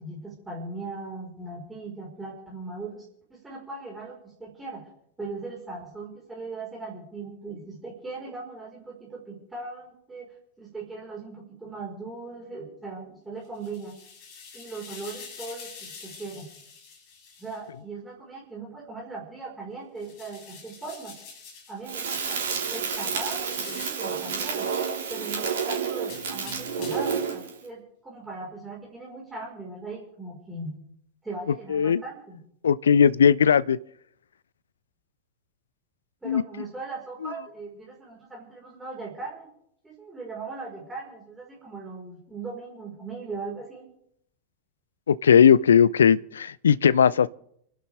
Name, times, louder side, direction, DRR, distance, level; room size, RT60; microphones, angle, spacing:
voice 1, 0.0-3.0 3.3-4.9 5.2-10.3 10.6-13.9 14.5-16.5 17.4-21.1 21.7-22.4 22.7-24.7 25.1-30.8 31.2-32.4 36.2-39.5 39.8-43.8, right 3 dB, 10° right, 4.9 m, -39 dB
sound 1, 13.4-17.6 20.0-21.8 23.2-24.1 26.0-27.2, left 5 dB, 40° left, 7.9 m, -45 dB
Crackle, 21.9-27.6, right 6 dB, 60° right, 3.9 m, -30 dB
voice 2, 31.7-32.0 32.6-33.8 36.2-36.4 37.2-37.3 45.1-47.3, left 7 dB, 70° left, 0.5 m, -18 dB
30.0 x 11.5 x 3.5 m
figure-of-eight pair, 90°, 0 cm